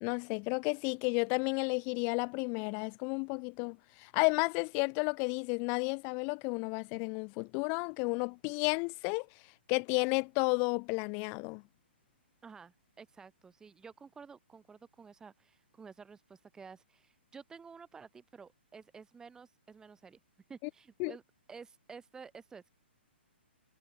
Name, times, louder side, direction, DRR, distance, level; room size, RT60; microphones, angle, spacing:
voice 1, 0.0-9.3 9.7-11.6 21.0-21.1, left 38 dB, 30° left, 1.3 m, -32 dB
voice 2, 12.4-20.2 20.5-21.2 21.5-22.7, right 5 dB, 10° right, 3.1 m, -52 dB
figure-of-eight pair, 125°, 6 cm